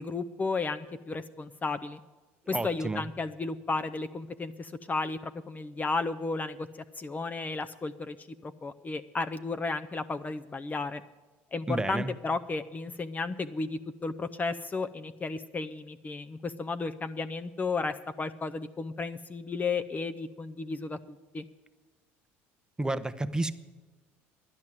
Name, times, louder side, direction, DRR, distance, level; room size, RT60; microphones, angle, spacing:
voice 1, 0.0-2.0 2.5-6.7 7.0-11.0 11.5-21.0 21.3-21.4, left 3 dB, 25° left, 10 dB, 0.6 m, -33 dB
voice 2, 2.5-3.0 11.7-12.1 22.8-23.5, right 2 dB, 10° right, 12 dB, 0.8 m, -30 dB
11.0 x 10.5 x 7.6 m, 1.2 s
supercardioid pair, 80°, 6 cm